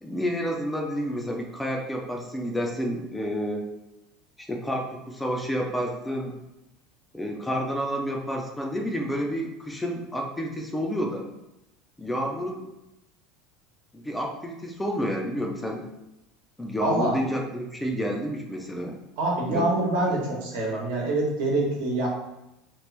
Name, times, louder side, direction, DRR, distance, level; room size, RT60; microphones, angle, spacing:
voice 1, 0.0-3.7 4.4-6.3 7.1-11.3 12.0-12.7 13.9-15.9 16.6-19.0 19.5-19.7, equal, 5° left, 1 dB, 0.4 m, -30 dB
voice 2, 16.8-17.1 19.2-22.1, right 2 dB, 80° right, -2 dB, 1.0 m, -25 dB
3.0 x 2.4 x 3.2 m, 0.90 s
cardioid pair, 150°, 0 cm